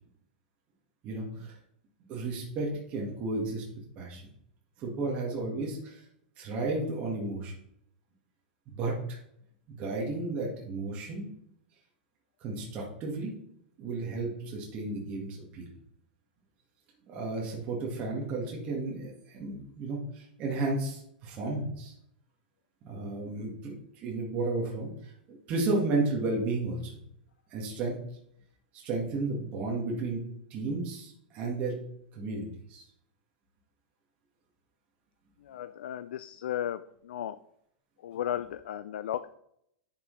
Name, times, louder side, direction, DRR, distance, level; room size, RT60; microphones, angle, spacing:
voice 1, 1.0-1.5 2.1-3.6 3.9-4.3 4.8-6.0 6.4-7.5 8.7-9.2 9.7-11.3 12.4-13.3 13.8-15.7 17.1-21.9 22.8-23.7 24.0-26.9 27.5-28.0 28.7-30.2 30.5-31.8 32.1-32.8, right 3 dB, 25° right, -3 dB, 1.7 m, -33 dB
voice 2, 35.4-37.4 38.0-39.3, left 11 dB, 80° left, 13 dB, 0.4 m, -35 dB
9.6 x 6.1 x 3.2 m, 0.74 s
supercardioid pair, 170°, 5 cm